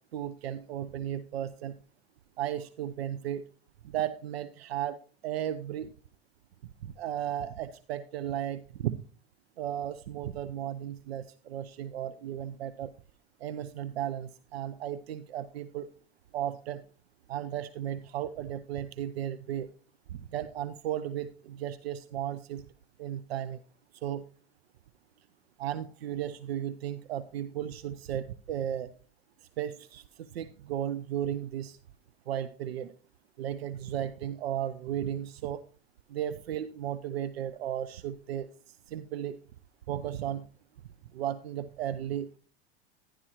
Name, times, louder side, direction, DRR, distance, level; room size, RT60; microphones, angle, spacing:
voice 1, 0.1-1.8 2.4-3.4 3.8-5.0 5.2-5.9 7.0-9.0 9.6-12.9 13.4-15.9 16.3-16.8 17.3-19.7 20.1-22.6 23.0-23.6 24.0-24.2 25.6-28.9 29.6-31.8 32.3-32.9 33.4-35.6 36.1-39.4 39.9-40.4 41.1-42.4, right 11 dB, 90° right, 13 dB, 0.6 m, -35 dB
11.5 x 11.0 x 3.0 m, 0.37 s
hypercardioid pair, 105°, 30 cm